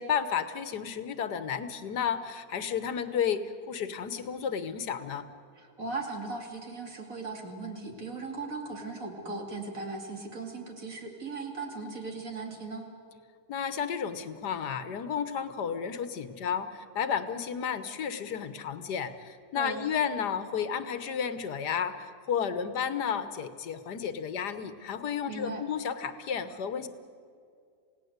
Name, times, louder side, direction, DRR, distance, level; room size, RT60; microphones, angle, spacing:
voice 1, 0.0-5.3 13.5-26.9, left 7 dB, 75° left, 11 dB, 1.6 m, -32 dB
voice 2, 5.6-12.9 19.5-19.8 25.3-25.6, right 3 dB, 50° right, 2 dB, 3.1 m, -38 dB
28.0 x 17.5 x 8.1 m, 2.3 s
omnidirectional pair, 1.8 m